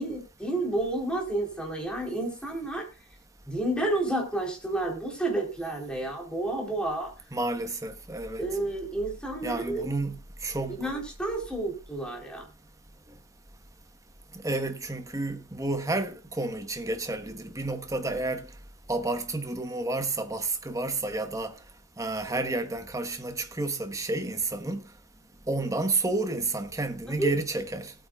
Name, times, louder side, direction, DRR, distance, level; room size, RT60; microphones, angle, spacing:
voice 1, 0.0-2.9 3.5-7.1 8.4-9.8 10.8-12.4 27.2-27.3, right 2 dB, 5° left, 3.7 m, -30 dB
voice 2, 7.3-8.5 9.4-10.8 14.4-18.5 18.9-21.5 22.0-24.8 25.5-27.9, right 2 dB, 15° right, 1.2 m, -30 dB
18.5 x 8.8 x 2.4 m
head